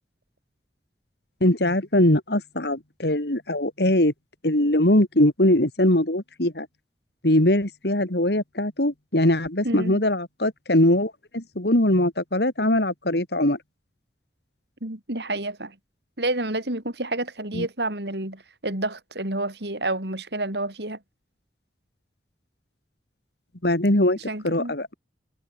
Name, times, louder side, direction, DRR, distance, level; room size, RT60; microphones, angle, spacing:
voice 1, 1.4-4.1 4.4-6.7 7.2-13.6 17.5-17.7 23.6-24.2 24.4-24.9, left 1 dB, 65° left, 3.2 m, -21 dB
voice 2, 9.6-10.0 14.8-15.7 16.2-21.0 24.3-24.8, right 2 dB, 70° right, 5.2 m, -29 dB
head